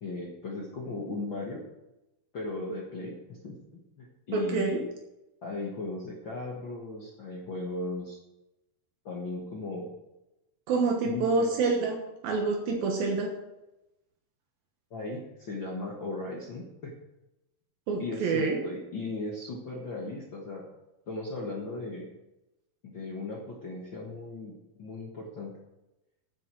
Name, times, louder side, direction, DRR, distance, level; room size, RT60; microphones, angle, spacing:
voice 1, 0.0-1.6 2.3-3.1 3.4-4.8 5.4-8.2 9.0-9.9 11.0-11.5 14.9-16.9 18.0-20.6 21.1-22.1 22.8-24.5 24.8-25.5, left 2 dB, 50° left, -2 dB, 1.5 m, -37 dB
voice 2, 4.3-4.8 10.7-13.3 17.9-18.6, right 4 dB, 75° right, 1 dB, 3.1 m, -27 dB
10.0 x 9.5 x 6.2 m, 0.95 s
omnidirectional pair, 4.3 m